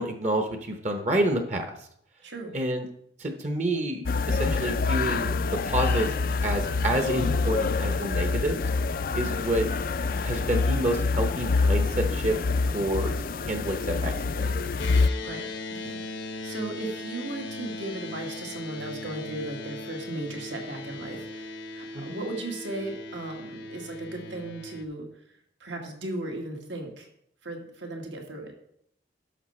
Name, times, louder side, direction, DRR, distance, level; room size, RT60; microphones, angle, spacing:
voice 1, 0.0-1.8 2.5-2.9 3.2-6.2 6.4-8.6 9.1-9.7 10.2-12.4 12.7-13.1 13.5-14.6 21.9-22.1, right 1 dB, 40° right, 5 dB, 0.8 m, -28 dB
voice 2, 2.2-2.5 15.2-16.0 16.4-21.5 21.7-25.1 25.6-27.1 27.4-28.6, right 2 dB, 80° right, 2 dB, 1.8 m, -36 dB
sound 1, 4.1-15.1, left 4 dB, 50° left, 0.4 m, -26 dB
sound 2, 14.8-24.8, left 2 dB, 80° left, 1.0 m, -38 dB
11.5 x 6.5 x 4.3 m, 0.72 s
head